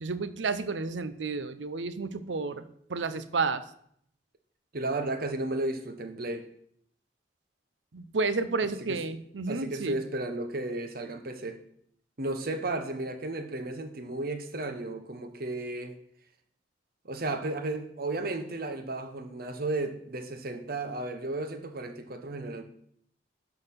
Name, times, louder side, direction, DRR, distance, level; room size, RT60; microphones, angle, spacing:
voice 1, 0.0-2.6 2.9-3.6 7.9-10.0, right 4 dB, 85° right, 13 dB, 0.7 m, -31 dB
voice 2, 4.7-6.5 8.9-9.0 9.5-11.6 12.2-15.9 17.0-22.6, right 2 dB, 55° right, 7 dB, 1.1 m, -33 dB
11.5 x 4.0 x 5.9 m, 0.67 s
head